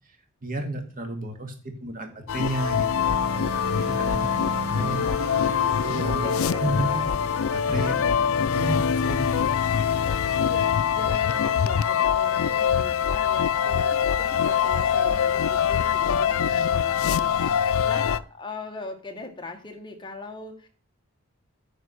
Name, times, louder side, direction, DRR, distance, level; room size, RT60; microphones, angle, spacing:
voice 1, 0.4-1.5 1.8-3.1 3.8-5.0 5.9-6.3 6.6-7.0 7.5-8.0 8.5-9.5, right 1 dB, 40° right, 4 dB, 2.2 m, -31 dB
Piano, 2.1-13.6, left 1 dB, 40° left, 1.9 m, -51 dB
sound 1, 2.3-18.2, left 8 dB, 70° left, 0.4 m, -24 dB
sound 2, 2.9-16.0, right 5 dB, 60° right, 0.5 m, -39 dB
voice 2, 4.8-7.3 7.7-8.3 10.1-20.7, left 2 dB, 20° left, 5 dB, 1.6 m, -40 dB
9.8 x 5.1 x 6.4 m, 0.42 s
head